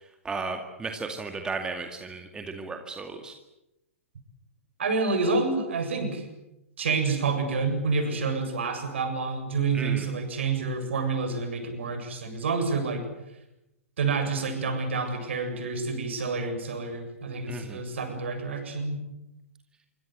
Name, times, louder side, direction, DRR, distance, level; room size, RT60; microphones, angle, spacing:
voice 1, 0.2-3.3 9.7-10.0 17.5-17.8, right 4 dB, 10° right, 5 dB, 2.2 m, -35 dB
voice 2, 4.8-6.3 6.8-13.0 14.0-19.0, right 4 dB, 60° right, 6 dB, 7.7 m, -28 dB
26.5 x 25.0 x 8.1 m, 0.90 s
figure-of-eight pair, 110°, 7 cm